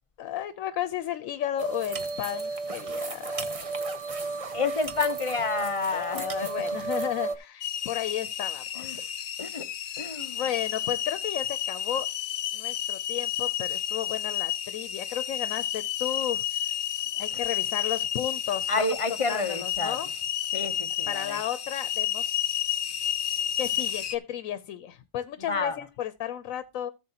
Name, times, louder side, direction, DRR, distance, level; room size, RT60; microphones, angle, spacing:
voice 1, 0.2-3.5 5.9-9.1 10.3-12.1 12.5-16.4 17.2-18.9 19.3-20.1 21.1-22.4 23.6-26.9, left 10 dB, 90° left, 1.1 m, -33 dB
sound 1, 1.6-7.4, right 3 dB, 30° right, 0.9 m, -33 dB
voice 2, 4.5-6.3 8.8-9.0 9.4-9.7 10.0-10.4 17.3-17.4 18.7-20.0 20.5-21.4 25.4-25.8, left 3 dB, 30° left, 0.7 m, -29 dB
sound 2, 7.6-24.2, left 10 dB, 70° left, 1.0 m, -31 dB
14.0 x 7.4 x 2.8 m
omnidirectional pair, 1.4 m